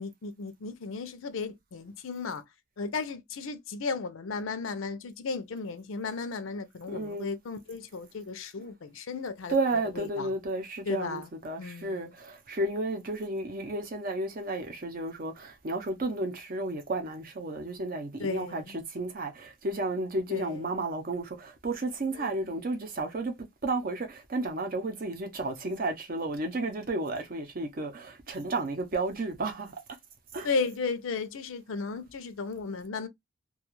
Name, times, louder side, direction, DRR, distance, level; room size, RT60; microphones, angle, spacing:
voice 1, 0.0-2.4 2.8-9.6 9.9-10.3 10.9-11.3 11.6-12.1 18.2-18.8 20.3-20.6 22.2-22.3 30.4-33.1, left 4 dB, 80° left, 0.5 m, -35 dB
voice 2, 6.9-7.3 8.6-8.7 9.5-23.3 23.6-29.7 30.3-30.5, right 2 dB, 45° right, 0.6 m, -32 dB
2.4 x 2.3 x 2.9 m
head